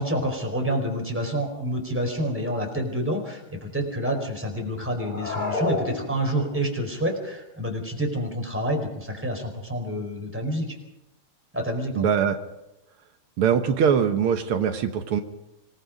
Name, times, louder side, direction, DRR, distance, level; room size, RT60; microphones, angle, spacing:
voice 1, 0.0-10.8 11.5-12.1, equal, 5° right, 2 dB, 4.3 m, -28 dB
sound 1, 5.0-6.6, left 2 dB, 20° left, 2.3 m, -29 dB
voice 2, 12.0-12.4 13.4-15.2, right 7 dB, 80° right, 7 dB, 2.0 m, -22 dB
26.0 x 19.0 x 5.2 m, 0.91 s
omnidirectional pair, 2.4 m